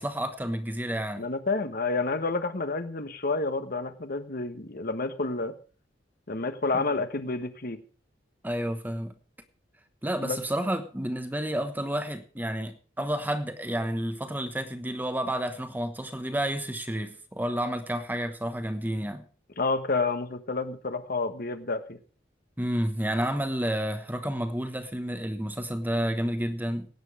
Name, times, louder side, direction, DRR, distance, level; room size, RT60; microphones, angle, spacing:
voice 1, 0.0-1.3 6.7-6.8 8.4-9.1 10.0-19.2 22.6-26.9, equal, 10° right, 1.1 m, -30 dB
voice 2, 1.2-5.5 6.3-7.8 10.2-10.4 19.6-22.0, left 3 dB, 50° left, 1.3 m, -29 dB
17.0 x 9.1 x 4.9 m
head